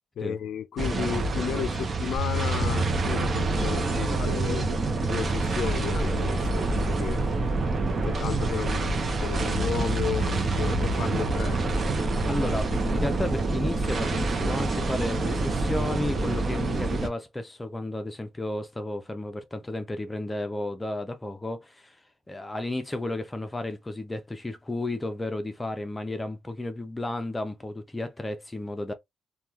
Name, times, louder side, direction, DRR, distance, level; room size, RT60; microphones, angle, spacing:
voice 1, 0.2-7.2 8.0-11.6, left 8 dB, 70° left, 0.4 m, -33 dB
sound 1, 0.8-17.1, right 3 dB, 40° right, 0.7 m, -27 dB
sound 2, 2.2-10.2, equal, 60° right, 1.1 m, -36 dB
voice 2, 12.3-22.0 22.3-28.9, left 1 dB, 15° left, 0.6 m, -33 dB
2.9 x 2.3 x 2.4 m
cardioid pair, 90°, 0 cm